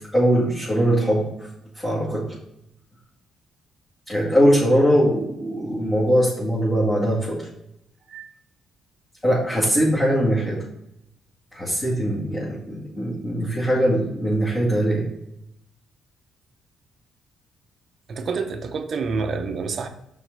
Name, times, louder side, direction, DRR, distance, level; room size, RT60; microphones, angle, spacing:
voice 1, 0.1-1.2 1.8-2.3 4.1-7.4 9.2-10.6 11.5-15.0, equal, 15° left, -8 dB, 2.2 m, -21 dB
voice 2, 18.1-19.9, right 4 dB, 50° right, 7 dB, 0.7 m, -28 dB
6.0 x 3.9 x 5.3 m, 0.81 s
cardioid pair, 90°, 0 cm